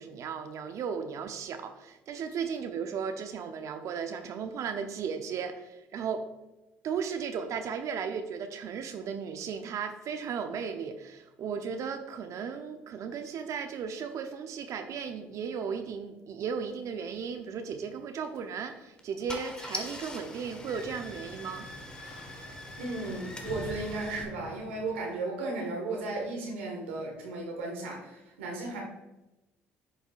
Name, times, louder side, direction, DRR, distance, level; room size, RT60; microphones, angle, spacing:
voice 1, 0.0-6.3 6.8-21.7, right 6 dB, 60° right, 8 dB, 0.7 m, -35 dB
Car / Engine starting, 18.2-18.4 19.0-19.1 19.3-24.2, left 1 dB, 15° left, 1.4 m, -42 dB
Sliding door, 20.2-25.1, equal, 80° left, 1.7 m, -46 dB
voice 2, 22.8-28.8, right 2 dB, 90° right, -1 dB, 1.7 m, -35 dB
11.0 x 5.2 x 2.5 m, 0.99 s
hypercardioid pair, 60°, 6 cm